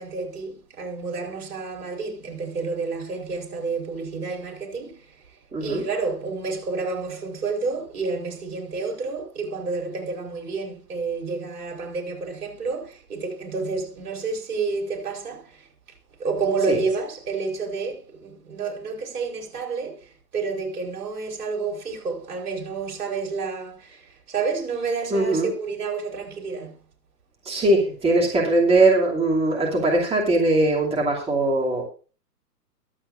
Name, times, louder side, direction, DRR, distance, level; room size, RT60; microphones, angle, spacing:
voice 1, 0.0-5.0 5.6-15.7 16.2-26.7, right 4 dB, 65° right, 5.0 m, -29 dB
voice 2, 5.5-5.8 16.7-16.8 25.1-25.5 27.4-31.8, right 2 dB, 10° right, 2.6 m, -20 dB
22.5 x 8.0 x 2.6 m
hypercardioid pair, 130°, 48 cm